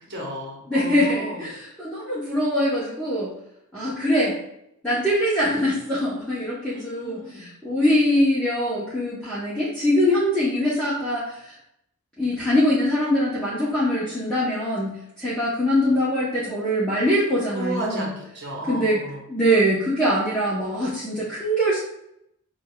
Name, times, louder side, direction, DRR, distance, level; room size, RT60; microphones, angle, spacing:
voice 1, 0.0-1.4 6.7-7.5 17.5-19.2, right 1 dB, 50° right, -2 dB, 1.0 m, -33 dB
voice 2, 0.7-3.3 3.7-4.4 4.8-11.5 12.2-18.1 18.7-19.0 19.3-21.8, equal, 5° left, -10 dB, 0.8 m, -23 dB
6.0 x 2.3 x 2.3 m, 0.78 s
head